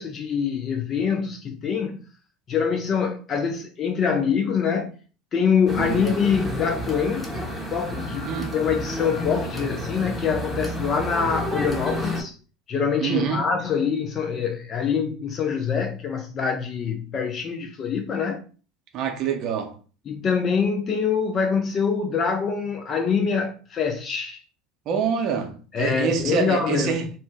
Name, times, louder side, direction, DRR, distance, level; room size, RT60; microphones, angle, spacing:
voice 1, 0.0-2.0 2.5-4.9 5.3-7.3 7.7-12.4 12.7-18.4 20.1-24.4 25.7-27.1, left 6 dB, 40° left, 0.4 m, -25 dB
sound 1, 5.7-12.2, left 1 dB, 15° left, 0.9 m, -30 dB
voice 2, 8.2-8.6 13.0-13.5 18.9-19.8 24.9-27.1, right 7 dB, 55° right, 0.6 m, -26 dB
2.7 x 2.0 x 3.4 m
hypercardioid pair, 75°, 0 cm